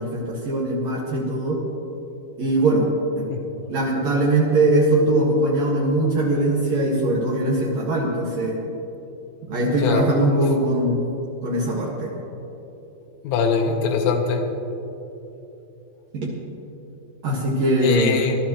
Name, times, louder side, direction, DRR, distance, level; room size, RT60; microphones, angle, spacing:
voice 1, 0.0-1.6 2.4-2.9 3.2-3.3 3.7-8.6 9.5-11.0 11.4-12.1 16.1-16.3 17.2-18.2, right 1 dB, 75° right, -5 dB, 1.5 m, -21 dB
voice 2, 13.2-14.4 17.8-18.4, left 5 dB, 80° left, 2 dB, 3.4 m, -22 dB
20.5 x 12.0 x 3.0 m, 2.9 s
omnidirectional pair, 5.8 m